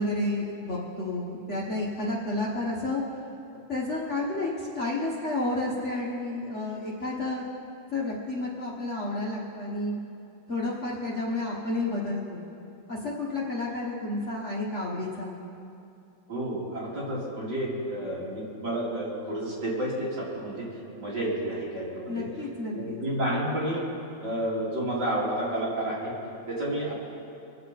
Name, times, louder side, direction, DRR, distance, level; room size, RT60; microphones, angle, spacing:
voice 1, 0.0-3.0 3.7-7.4 7.9-9.9 10.5-12.4 12.9-15.3 22.1-23.0, left 2 dB, 40° left, -5 dB, 1.4 m, -31 dB
voice 2, 16.3-20.7 21.0-22.3 22.7-23.8 24.2-26.1 26.5-26.9, right 1 dB, 55° right, -6 dB, 3.3 m, -30 dB
23.0 x 7.7 x 4.2 m, 2.7 s
omnidirectional pair, 2.3 m